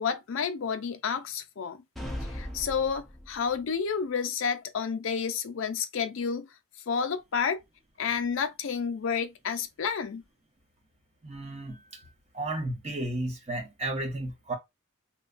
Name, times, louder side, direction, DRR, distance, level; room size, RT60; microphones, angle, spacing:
voice 1, 0.0-1.8 2.3-6.5 6.9-7.6 8.0-10.2, left 6 dB, 60° left, 0.4 m, -30 dB
sound 1, 2.0-3.6, equal, ahead, 0.4 m, -38 dB
voice 2, 11.2-12.0 12.3-14.5, right 2 dB, 30° right, 0.8 m, -33 dB
3.0 x 2.2 x 2.4 m
head